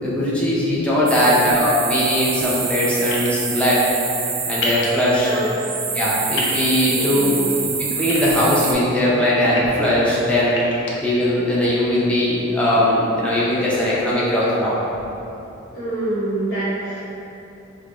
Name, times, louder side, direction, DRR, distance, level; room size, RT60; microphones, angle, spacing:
voice 1, 0.0-3.8 4.5-5.3 5.9-7.4 8.0-10.6 11.0-14.8, left 1 dB, 5° left, -9 dB, 0.5 m, -19 dB
voice 2, 1.0-1.4 5.2-5.5 5.8-5.9 6.9-7.5 15.7-17.0, right 1 dB, 45° left, -11 dB, 1.3 m, -26 dB
sound 1, 1.1-8.7, right 5 dB, 70° right, 0.5 m, -26 dB
sound 2, 3.1-3.3 4.6-4.9 6.4-6.6 8.1-8.7 9.3-9.6 10.5-10.9, left 2 dB, 65° left, 0.5 m, -27 dB
5.1 x 2.2 x 2.4 m, 2.9 s
head